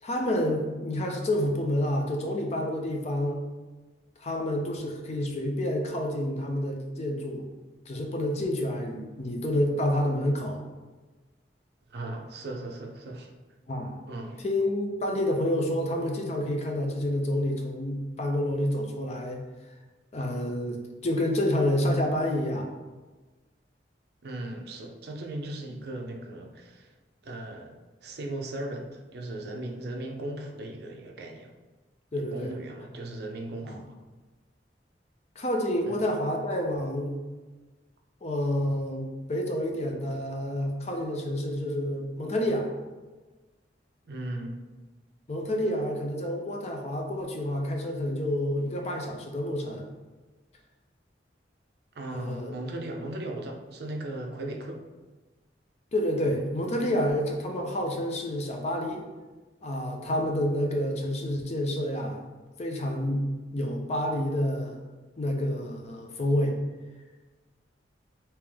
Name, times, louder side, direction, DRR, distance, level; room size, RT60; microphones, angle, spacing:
voice 1, 0.0-3.4 4.2-7.5 7.9-10.6 13.7-13.9 14.4-19.4 20.1-20.8 21.0-22.7 32.1-32.5 33.6-33.8 35.4-37.2 38.2-42.7 45.3-49.8 52.1-52.5 55.9-59.0 59.6-62.2 62.6-63.2 63.5-64.8 65.2-66.6, left 1 dB, 40° left, 2 dB, 0.5 m, -28 dB
voice 2, 11.9-13.3 14.1-14.4 24.2-26.9 27.2-27.7 28.0-31.5 32.2-33.9 35.9-36.0 44.1-44.6 51.9-54.8, right 1 dB, 65° right, 3 dB, 0.5 m, -37 dB
3.4 x 2.8 x 3.4 m, 1.2 s
head